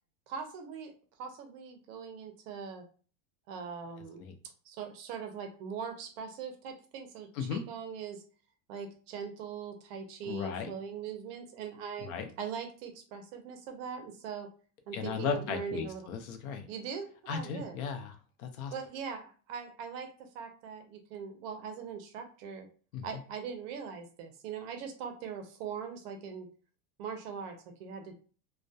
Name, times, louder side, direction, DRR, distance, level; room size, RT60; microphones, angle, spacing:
voice 1, 0.3-0.9 1.2-2.8 3.5-4.2 4.6-8.2 8.7-12.1 12.4-14.5 14.9-16.1 16.7-17.8 18.7-20.1 20.3-22.7 23.0-26.5 27.0-28.1, right 6 dB, 45° right, 5 dB, 0.5 m, -41 dB
voice 2, 10.2-10.7 12.0-12.2 14.9-16.6 17.3-18.1 18.4-18.7 22.9-23.0, left 7 dB, 70° left, 7 dB, 0.6 m, -36 dB
2.2 x 2.1 x 2.6 m, 0.39 s
supercardioid pair, 165°, 42 cm